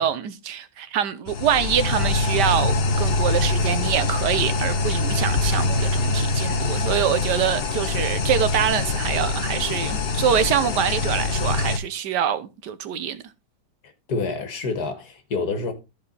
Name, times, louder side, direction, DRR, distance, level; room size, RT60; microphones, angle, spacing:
voice 1, 0.0-13.2, right 9 dB, 90° right, 1.5 m, -25 dB
sound 1, 1.3-11.8, left 3 dB, 45° left, 0.9 m, -24 dB
voice 2, 13.8-15.7, left 3 dB, 70° left, 2.1 m, -28 dB
13.0 x 4.9 x 4.0 m
omnidirectional pair, 1.8 m